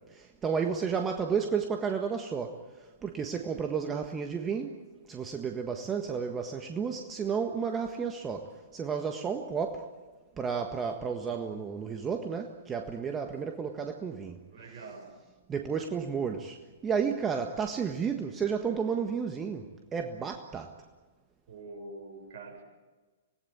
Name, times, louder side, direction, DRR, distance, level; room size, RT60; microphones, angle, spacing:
voice 1, 0.1-2.6 3.0-4.8 5.1-9.9 10.4-14.4 14.6-14.8 15.5-16.6 16.8-20.7, right 6 dB, 20° right, 4 dB, 1.6 m, -32 dB
voice 2, 14.5-15.1 21.5-22.6, right 3 dB, 55° right, 3 dB, 7.0 m, -45 dB
26.0 x 19.0 x 8.6 m, 1.3 s
figure-of-eight pair, 110°, 0 cm